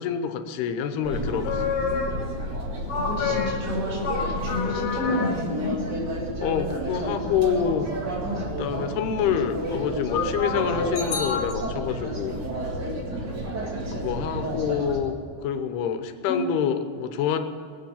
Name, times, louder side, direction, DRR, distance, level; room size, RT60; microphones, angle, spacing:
voice 1, 0.0-1.6 6.4-7.9 8.6-12.3 13.9-15.1 15.4-17.4, left 8 dB, 80° left, 8 dB, 2.9 m, -27 dB
sound 1, 1.0-15.0, right 1 dB, 35° right, 1.8 m, -31 dB
sound 2, 1.3-2.4 2.9-5.4 10.1-11.5, left 5 dB, 65° left, 2.6 m, -29 dB
voice 2, 2.9-5.8 8.3-8.6 16.3-16.7, left 1 dB, 80° right, -3 dB, 6.7 m, -30 dB
20.0 x 8.4 x 7.3 m, 2.3 s
omnidirectional pair, 4.7 m